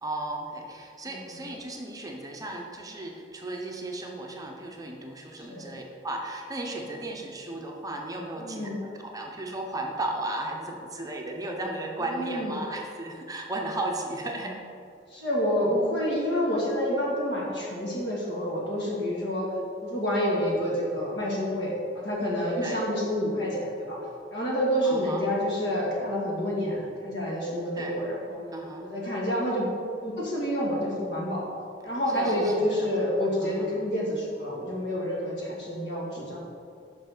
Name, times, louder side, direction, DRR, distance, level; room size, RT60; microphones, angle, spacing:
voice 1, 0.0-14.6 19.2-19.3 22.6-22.8 24.8-25.3 27.7-28.0 28.5-28.9 32.1-32.9 33.4-33.7, right 2 dB, 20° right, 1 dB, 0.7 m, -35 dB
voice 2, 1.1-1.4 5.5-5.7 8.4-8.8 12.1-12.5 15.1-19.5 19.8-24.0 24.3-28.4 28.8-29.7 30.0-31.4 31.8-36.4, equal, 70° left, -4 dB, 2.0 m, -28 dB
5.9 x 5.4 x 6.0 m, 2.4 s
head